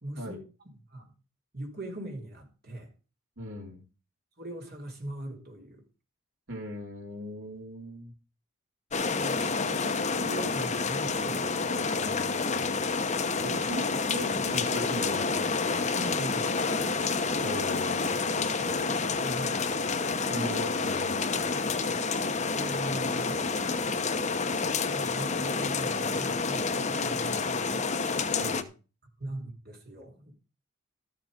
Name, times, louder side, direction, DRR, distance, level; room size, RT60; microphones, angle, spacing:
voice 1, 0.0-0.4 0.6-1.1 1.5-2.9 4.4-5.8 9.1-9.5 10.0-11.6 11.9-12.1 13.3-13.6 15.9-16.6 18.6-19.8 22.5-23.7 24.9-27.9 29.2-30.3, right 1 dB, 45° right, 3.6 m, -40 dB
voice 2, 3.4-3.8 6.5-8.1 12.0-12.8 13.4-13.8 14.1-15.4 17.4-18.2 20.3-21.4 28.3-28.7, equal, 65° right, 3.5 m, -39 dB
sound 1, 8.9-28.6, left 4 dB, 35° left, 0.9 m, -29 dB
13.0 x 7.6 x 5.1 m
head